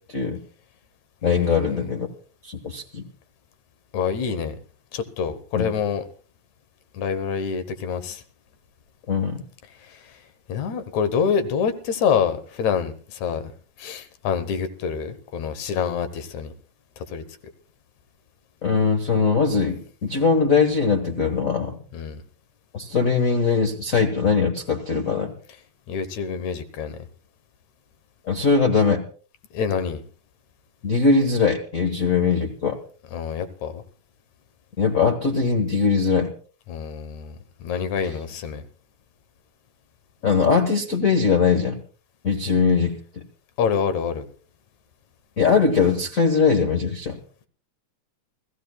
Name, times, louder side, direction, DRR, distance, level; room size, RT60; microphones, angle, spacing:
voice 1, 0.1-0.4 1.2-2.1 2.4-3.0 5.5-5.7 9.1-9.4 18.6-21.8 22.7-25.3 28.2-29.0 30.8-32.8 34.8-36.3 40.2-41.8 42.2-43.0 45.4-47.2, left 5 dB, 45° left, 5 dB, 1.2 m, -21 dB
voice 2, 1.2-1.9 3.9-4.6 4.9-6.0 6.9-8.2 9.8-10.2 10.5-13.5 13.8-16.5 17.0-17.2 21.9-22.2 25.9-27.0 29.5-30.0 33.1-33.8 36.7-37.4 37.6-38.6 43.6-44.2, left 7 dB, 75° left, 11 dB, 2.5 m, -26 dB
29.0 x 15.5 x 2.3 m, 0.42 s
omnidirectional pair, 3.3 m